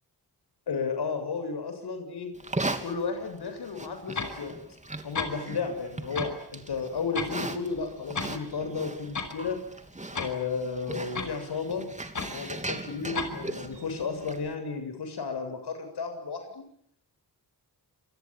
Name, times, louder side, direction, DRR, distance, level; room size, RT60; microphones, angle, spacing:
voice 1, 0.7-2.3 2.8-4.5 5.0-9.6 10.2-11.9 12.3-16.6, left 5 dB, 75° left, 7 dB, 7.6 m, -33 dB
Livestock farm animals working animals, 2.3-14.5, right 2 dB, 20° right, 3.1 m, -39 dB
sound 1, 4.1-4.4 4.9-5.0 5.1-5.3 6.1-6.4 6.7-7.4 7.7-8.3 8.7-8.8 9.1-9.3 10.1-10.4 11.1-11.4 12.1-12.3 13.1-13.3, left 4 dB, 45° left, 5.4 m, -33 dB
27.5 x 23.0 x 9.1 m, 0.66 s
cardioid pair, 80°, 39 cm